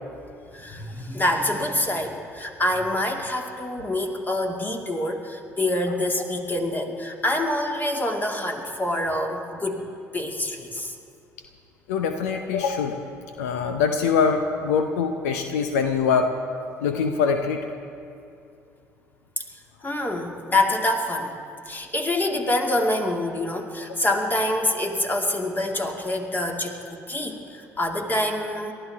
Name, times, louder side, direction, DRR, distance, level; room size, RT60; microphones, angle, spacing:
voice 1, 0.5-9.8 10.1-10.9 19.4-19.5 19.8-21.3 21.7-26.8 27.1-28.7, left 1 dB, 25° left, 2 dB, 2.5 m, -26 dB
voice 2, 11.9-13.0 13.4-16.3 16.8-17.6, left 6 dB, 75° left, 6 dB, 0.8 m, -23 dB
30.0 x 13.5 x 3.6 m, 2.5 s
figure-of-eight pair, 50°, 8 cm